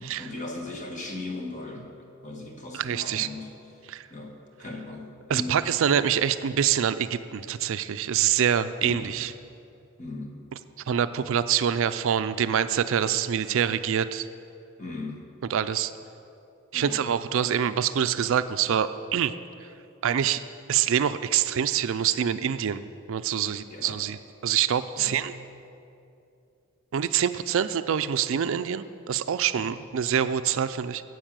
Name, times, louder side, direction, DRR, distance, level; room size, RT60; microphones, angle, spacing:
voice 1, 0.0-1.9 2.2-3.5 4.1-5.6 8.8-9.2 10.0-10.4 14.8-15.2 16.7-17.0 23.7-24.0 25.0-25.2 29.5-29.8, left 2 dB, 35° left, 2 dB, 1.4 m, -38 dB
voice 2, 2.7-3.3 3.9-4.0 5.3-9.3 10.9-14.3 15.5-15.9 16.7-19.3 20.0-20.4 20.7-25.3 26.9-31.0, right 8 dB, 65° right, 12 dB, 0.4 m, -25 dB
10.0 x 7.9 x 7.4 m, 2.7 s
head